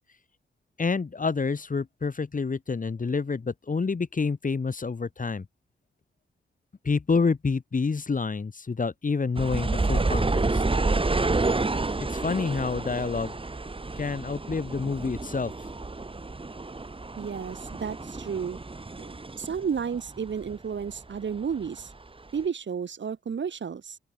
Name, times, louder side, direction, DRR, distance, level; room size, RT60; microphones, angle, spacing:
voice 1, 0.8-5.5 6.8-10.6 12.1-13.3 14.0-15.5, left 4 dB, 40° left, 1.8 m, -28 dB
sound 1, 9.3-20.5 20.8-21.9 22.4-22.5, right 3 dB, 25° right, 1.9 m, -29 dB
voice 2, 17.2-18.6 19.0-21.9 22.3-24.0, right 6 dB, 65° right, 3.1 m, -32 dB
open air
cardioid pair, 50°, 20 cm